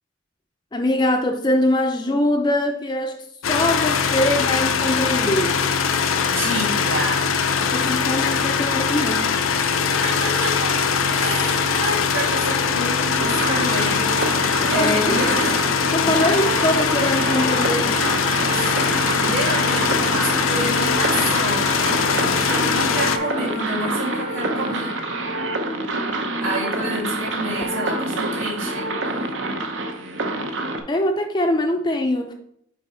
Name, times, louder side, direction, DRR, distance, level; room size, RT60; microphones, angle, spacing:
voice 1, 0.7-3.2 3.5-5.6 7.6-9.3 14.6-15.4 15.9-17.9 30.9-32.3, left 1 dB, 20° left, 0.4 m, -22 dB
sound 1, 3.4-23.2, left 6 dB, 80° left, 0.5 m, -21 dB
voice 2, 6.2-7.3 9.6-15.7 16.1-16.4 18.5-25.0 26.4-28.9, right 1 dB, 85° right, 2.5 m, -29 dB
Wind instrument woodwind instrument, 10.2-25.2, left 1 dB, 45° right, 1.8 m, -36 dB
sound 2, 13.2-30.8, right 2 dB, 65° right, 0.8 m, -27 dB
6.0 x 4.6 x 4.2 m
head